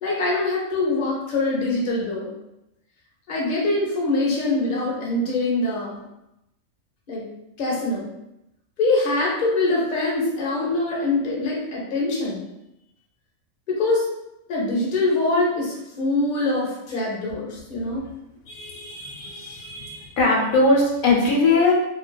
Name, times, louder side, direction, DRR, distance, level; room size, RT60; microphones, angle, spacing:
voice 1, 0.0-2.3 3.3-6.0 7.1-7.2 7.6-8.1 8.8-12.4 13.7-14.0 14.5-18.0, left 2 dB, 45° left, -4 dB, 0.7 m, -23 dB
voice 2, 18.5-21.7, left 3 dB, 90° left, -2 dB, 1.1 m, -21 dB
2.5 x 2.3 x 2.2 m, 0.87 s
omnidirectional pair, 1.4 m